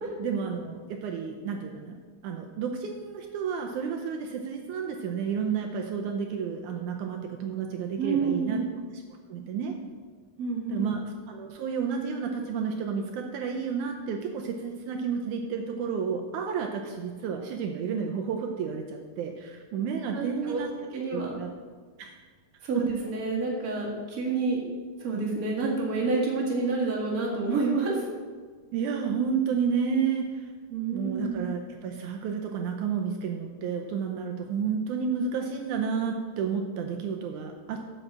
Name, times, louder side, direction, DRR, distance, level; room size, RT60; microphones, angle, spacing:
voice 1, 0.2-2.0 2.2-8.6 9.3-9.7 10.7-20.7 21.1-21.5 22.0-22.1 28.7-30.5 30.9-37.8, right 6 dB, 80° right, 2 dB, 2.1 m, -31 dB
voice 2, 8.0-8.7 10.4-10.8 20.1-20.6 20.9-21.3 22.6-24.6 25.0-28.0 30.7-31.4, right 3 dB, 30° right, -4 dB, 2.1 m, -28 dB
7.9 x 6.3 x 7.4 m, 1.5 s
omnidirectional pair, 3.6 m